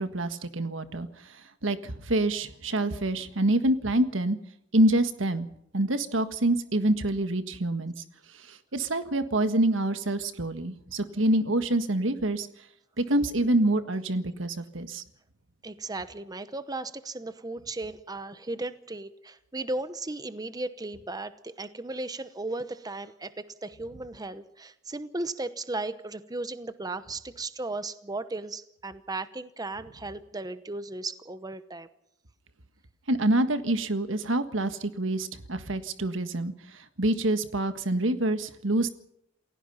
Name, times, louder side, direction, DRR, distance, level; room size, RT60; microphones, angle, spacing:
voice 1, 0.0-1.4 1.6-4.4 4.7-5.5 5.7-7.9 8.4-12.5 13.0-15.0 33.1-38.9, right 1 dB, 75° right, 10 dB, 1.6 m, -26 dB
voice 2, 15.6-31.9, right 2 dB, 20° right, 12 dB, 0.9 m, -36 dB
28.5 x 16.5 x 5.7 m, 0.75 s
head